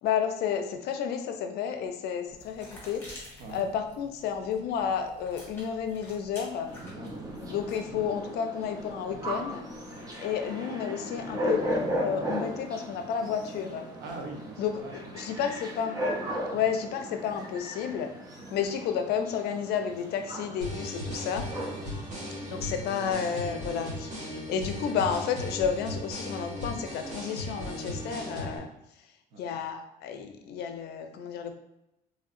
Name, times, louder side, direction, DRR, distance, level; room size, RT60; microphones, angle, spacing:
voice 1, 0.0-6.7 7.5-9.6 10.2-11.6 12.0-13.9 14.6-16.0 16.5-18.1 18.5-21.5 22.4-28.7 29.4-31.5, left 7 dB, 65° left, 6 dB, 0.4 m, -31 dB
sound 1, 2.3-7.9, left 1 dB, 10° left, 1.1 m, -49 dB
sound 2, 6.7-23.4, equal, 20° right, 0.5 m, -37 dB
voice 2, 6.9-7.6 7.8-8.0 9.0-9.3 9.9-10.1 14.0-15.4 16.5-16.7 18.4-18.6 21.7-22.7 29.3-29.6, right 3 dB, 75° right, 1 dB, 0.8 m, -45 dB
sound 3, 20.6-28.6, left 1 dB, 40° right, 1.4 m, -37 dB
3.1 x 2.7 x 2.5 m, 0.89 s
cardioid pair, 140°, 18 cm